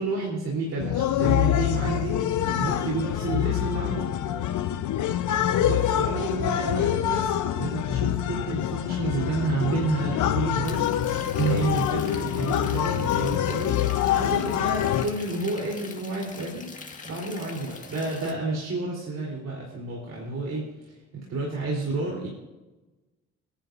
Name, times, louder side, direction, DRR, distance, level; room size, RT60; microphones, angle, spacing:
voice 1, 0.0-4.0 5.6-10.8 11.4-16.7 17.0-20.7 21.1-22.3, right 3 dB, 60° right, -3 dB, 3.9 m, -30 dB
sound 1, 0.8-15.1, left 11 dB, 80° left, 1.0 m, -25 dB
sound 2, 10.6-18.3, left 4 dB, 25° left, 2.0 m, -43 dB
28.5 x 10.5 x 2.7 m, 1.1 s
cardioid pair, 90°, 30 cm